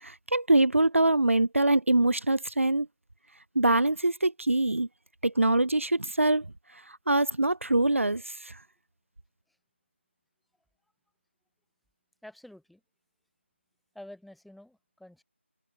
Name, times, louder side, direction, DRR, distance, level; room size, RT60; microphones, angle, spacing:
voice 1, 0.0-2.9 3.6-4.9 5.2-6.5 7.1-8.5, right 2 dB, 80° right, 2.1 m, -24 dB
voice 2, 12.2-12.8 13.9-15.2, left 1 dB, ahead, 5.2 m, -49 dB
figure-of-eight pair, 165°, 7 cm